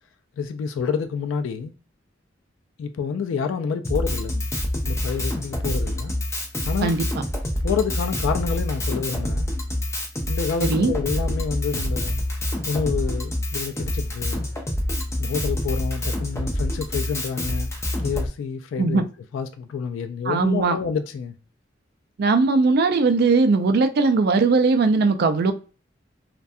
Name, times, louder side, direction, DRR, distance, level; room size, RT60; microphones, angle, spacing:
voice 1, 0.4-1.7 2.8-4.5 4.8-6.1 6.6-6.9 7.6-9.5 10.3-12.2 12.7-14.4 15.2-17.7 18.0-19.0 19.3-21.3, left 6 dB, 85° left, 0.3 m, -28 dB
Drum kit, 3.8-18.3, left 1 dB, 15° left, 0.5 m, -27 dB
voice 2, 10.6-10.9 18.8-19.1 20.3-20.8 22.2-25.5, right 4 dB, 55° right, 0.4 m, -19 dB
2.3 x 2.1 x 2.6 m
head